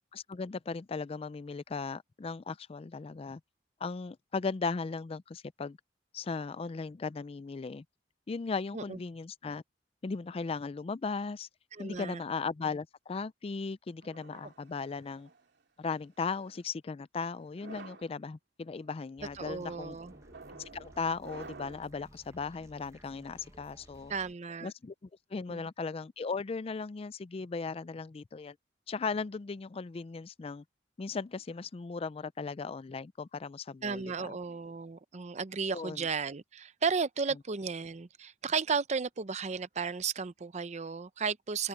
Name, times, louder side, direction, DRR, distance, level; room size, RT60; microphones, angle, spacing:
voice 1, 0.1-3.4 3.8-5.8 6.1-7.8 8.3-9.6 10.0-11.5 11.8-15.3 15.8-20.0 20.6-24.1 24.6-28.6 28.9-30.6 31.0-34.3 35.7-36.1, left 4 dB, 35° left, 0.4 m, -37 dB
voice 2, 11.7-12.2 19.4-20.1 24.1-24.7 25.5-25.6 33.8-41.7, right 5 dB, 40° right, 0.6 m, -34 dB
sound 1, 14.0-15.4 16.2-16.6 17.4-18.1 18.8-19.1 20.1-21.9, right 3 dB, 70° right, 2.9 m, -50 dB
sound 2, 19.2-24.3, right 1 dB, 15° right, 1.0 m, -57 dB
open air
head